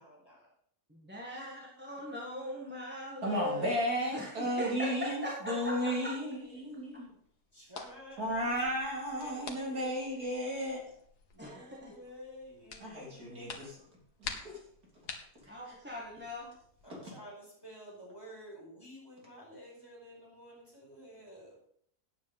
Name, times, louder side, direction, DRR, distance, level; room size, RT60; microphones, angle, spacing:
voice 1, 0.0-0.5 5.5-6.8 7.5-8.5 9.1-10.3 11.3-13.9 16.8-21.6, equal, 15° left, -4 dB, 4.9 m, -51 dB
voice 2, 0.9-3.7 4.1-6.1 11.4-11.9 15.5-16.5, equal, 5° right, -3 dB, 1.7 m, -40 dB
voice 3, 3.2-7.1 8.2-10.8 12.8-13.8 14.2-14.6 15.7-15.8, equal, 65° right, -3 dB, 4.1 m, -34 dB
sound 1, 5.6-16.9, left 5 dB, 75° left, 1.9 m, -50 dB
9.6 x 8.4 x 5.4 m, 0.64 s
omnidirectional pair, 1.7 m